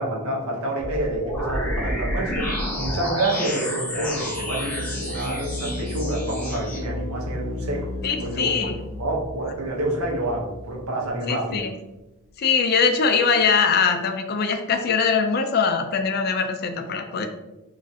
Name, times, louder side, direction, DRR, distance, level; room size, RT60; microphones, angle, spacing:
voice 1, 0.0-7.9 8.2-8.5 9.0-11.7, right 1 dB, 80° right, -2 dB, 0.8 m, -28 dB
sound 1, 0.8-6.8, equal, 5° left, 0.8 m, -29 dB
sound 2, 3.8-11.0, left 2 dB, 60° left, 0.7 m, -34 dB
voice 2, 8.0-8.8 11.3-11.7 12.4-17.3, left 5 dB, 45° left, 6 dB, 0.3 m, -22 dB
2.4 x 2.3 x 4.0 m, 1.0 s
head